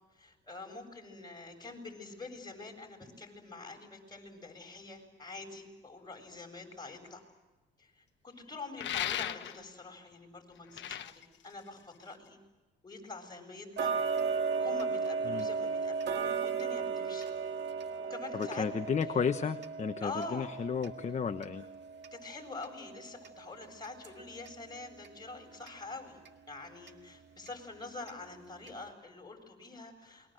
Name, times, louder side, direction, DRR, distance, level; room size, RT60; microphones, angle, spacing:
voice 1, 0.1-7.2 7.8-12.4 12.8-14.0 14.6-17.3 18.0-18.7 20.0-20.6 22.1-26.2 26.5-30.3, left 3 dB, 20° left, 3 dB, 7.6 m, -46 dB
sound 1, 8.8-9.8 10.6-12.3, left 11 dB, 65° left, 1.2 m, -37 dB
Tick-tock, 13.8-24.6 25.0-25.1 25.7-25.8 26.2-26.3 26.9-27.0 27.5-27.6 28.1-28.2 28.7-28.8, right 5 dB, 60° right, 1.9 m, -36 dB
voice 2, 18.3-21.7, left 6 dB, 35° left, 8 dB, 1.1 m, -33 dB
28.5 x 23.0 x 7.9 m, 1.1 s
cardioid pair, 90°, 20 cm